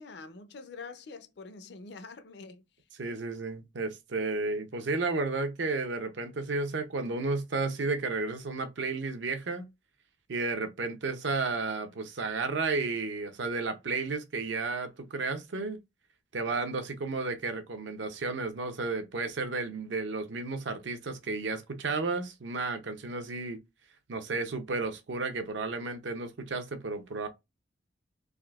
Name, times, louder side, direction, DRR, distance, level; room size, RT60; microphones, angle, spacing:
voice 1, 0.0-2.6, left 4 dB, 60° left, 0.5 m, -45 dB
voice 2, 2.9-9.7 10.3-15.8 16.3-23.6 24.1-27.3, right 3 dB, 70° right, 0.6 m, -32 dB
3.6 x 2.6 x 2.3 m
head